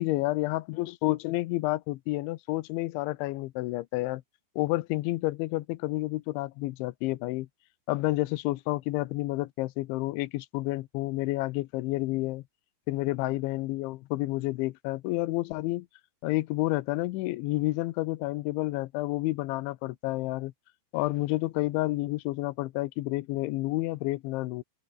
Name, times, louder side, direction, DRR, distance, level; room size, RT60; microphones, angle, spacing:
voice 1, 0.0-4.2 4.6-7.5 7.9-12.4 12.9-15.9 16.2-20.5 20.9-24.6, left 19 dB, 85° left, 3.2 m, -30 dB
open air
omnidirectional pair, 5.3 m